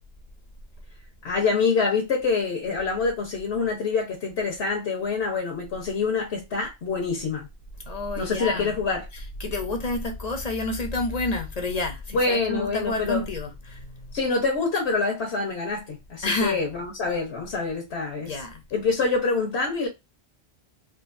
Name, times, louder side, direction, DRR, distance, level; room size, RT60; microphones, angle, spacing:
voice 1, 1.2-7.5 8.2-9.1 12.1-13.2 14.1-18.4 18.7-19.9, left 4 dB, 85° left, 1.2 m, -26 dB
voice 2, 7.9-8.7 9.4-14.2 16.2-16.6 18.3-18.6, left 2 dB, 45° left, 0.7 m, -29 dB
3.7 x 2.6 x 2.5 m
omnidirectional pair, 1.1 m